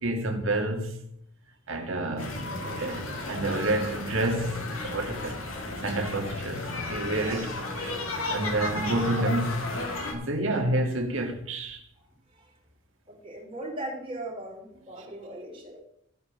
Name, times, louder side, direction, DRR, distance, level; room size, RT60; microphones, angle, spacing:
voice 1, 0.0-1.0 1.7-2.5 2.8-5.4 5.7-7.5 7.8-8.0 8.3-9.7 10.1-11.8, right 1 dB, 65° right, 1.8 m, -29 dB
sound 1, 2.2-10.1, left 2 dB, 80° left, 2.1 m, -34 dB
voice 2, 2.5-2.9 6.8-8.1 12.3-12.6 13.1-15.8, right 1 dB, 25° right, 3.2 m, -40 dB
14.5 x 5.2 x 6.0 m
head